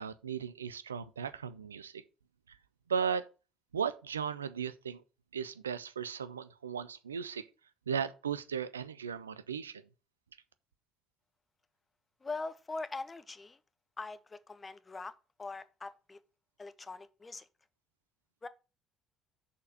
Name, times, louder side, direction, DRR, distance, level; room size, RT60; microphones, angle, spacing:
voice 1, 0.0-2.0 2.9-3.2 3.7-5.0 5.3-7.4 7.9-9.8, right 7 dB, 85° right, 0.4 m, -36 dB
voice 2, 12.2-13.6 14.0-15.1 15.4-16.2 16.6-17.5 18.4-18.5, left 3 dB, 25° left, 0.8 m, -42 dB
6.6 x 4.3 x 6.6 m
figure-of-eight pair, 50°, 0 cm